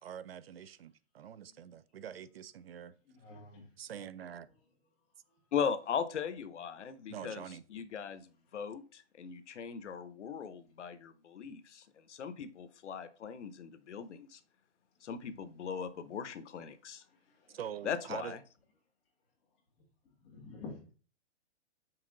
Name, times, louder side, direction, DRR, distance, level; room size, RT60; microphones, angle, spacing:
voice 1, 0.0-2.9 3.8-4.4 7.1-7.6 17.5-18.4, right 9 dB, 60° right, 0.5 m, -45 dB
voice 2, 3.1-3.7 17.1-17.6 20.2-20.8, left 3 dB, 20° left, 1.8 m, -49 dB
voice 3, 5.5-7.4 7.7-14.4 15.0-17.0 17.8-18.4, left 7 dB, 85° left, 0.9 m, -39 dB
5.9 x 4.2 x 3.8 m
hypercardioid pair, 165°, 34 cm